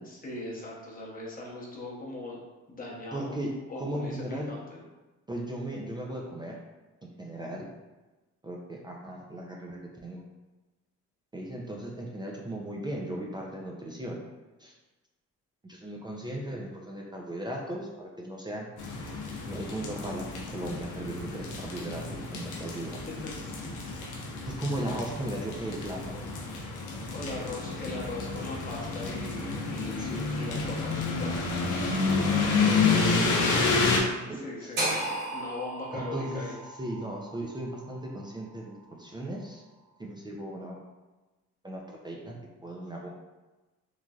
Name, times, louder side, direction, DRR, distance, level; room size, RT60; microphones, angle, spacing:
voice 1, 0.1-2.4 2.7-3.3 3.7-4.8 22.5-22.6 23.2-23.7 24.0-24.5 27.1-31.5 34.3-34.8 35.3-36.5, left 2 dB, 30° left, -4 dB, 0.8 m, -40 dB
voice 2, 3.1-4.6 5.3-6.6 7.0-7.7 8.4-10.2 11.3-14.2 14.6-14.7 15.6-18.7 19.5-23.0 24.4-26.3 30.0-30.3 32.1-32.4 34.3-34.7 35.9-36.4 36.8-39.6 40.0-40.8 41.6-43.1, right 1 dB, 15° right, -2 dB, 0.4 m, -37 dB
sound 1, 18.8-34.0, left 4 dB, 80° left, 0.6 m, -30 dB
sound 2, 34.8-38.9, right 1 dB, 85° right, 1.3 m, -35 dB
3.1 x 2.5 x 2.3 m, 1.1 s
cardioid pair, 90°, 30 cm